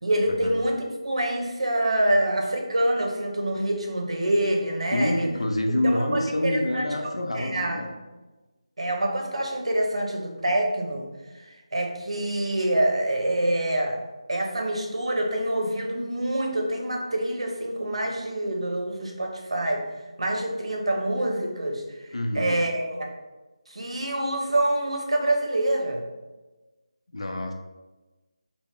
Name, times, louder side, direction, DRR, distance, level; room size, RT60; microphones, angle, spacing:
voice 1, 0.0-5.3 5.8-7.8 8.8-11.1 11.4-14.0 14.3-19.8 20.2-23.1 23.7-26.0, right 1 dB, 70° right, 2 dB, 0.7 m, -26 dB
voice 2, 4.9-7.9 22.1-22.6 27.1-27.5, left 1 dB, 70° left, 3 dB, 0.6 m, -27 dB
4.4 x 2.0 x 3.6 m, 1.2 s
figure-of-eight pair, 160°, 3 cm